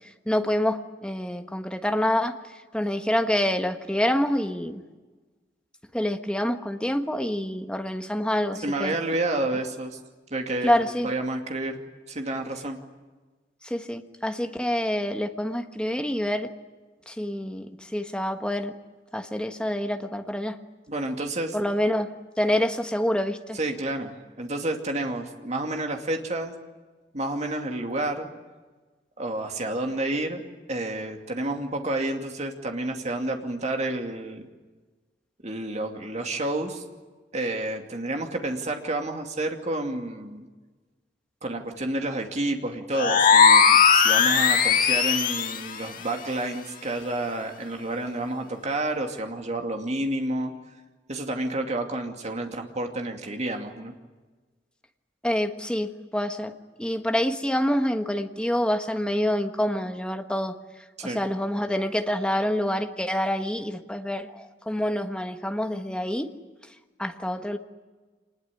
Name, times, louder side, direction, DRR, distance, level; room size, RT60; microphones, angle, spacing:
voice 1, 0.2-2.4 2.7-4.8 5.9-8.9 10.6-11.1 13.6-16.5 17.1-18.7 19.1-20.6 21.5-22.1 22.4-23.6 55.2-56.5 56.8-60.6 61.0-66.3 67.0-67.6, left 1 dB, 5° left, 6 dB, 1.4 m, -27 dB
voice 2, 8.6-10.0 10.3-11.8 12.1-12.8 20.9-21.6 23.5-26.5 27.1-28.3 29.2-30.4 30.7-34.5 35.4-36.8 37.3-40.5 41.4-50.5 51.1-53.9 61.0-61.2, right 2 dB, 40° right, 4 dB, 2.5 m, -30 dB
sound 1, 42.9-45.7, left 6 dB, 50° left, 1.8 m, -18 dB
26.0 x 20.5 x 9.8 m, 1.3 s
head